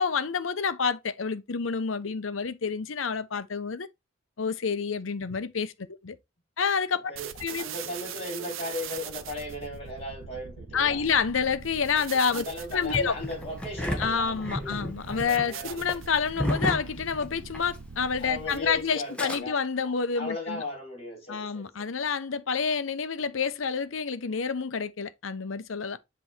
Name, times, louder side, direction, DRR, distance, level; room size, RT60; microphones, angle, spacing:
voice 1, 0.0-3.9 4.4-6.2 6.6-7.0 7.4-7.6 10.7-12.4 12.7-13.1 14.0-20.6 21.3-26.0, left 5 dB, 75° left, 0.7 m, -28 dB
voice 2, 7.1-11.1 12.3-15.8 18.2-19.6 19.8-21.9, left 2 dB, 30° left, 3.8 m, -37 dB
sound 1, 7.2-19.0, right 6 dB, 80° right, 0.7 m, -42 dB
Engine starting, 12.9-17.8 18.0-18.1 18.9-19.4, left 1 dB, 5° left, 1.2 m, -32 dB
7.8 x 3.1 x 4.3 m
head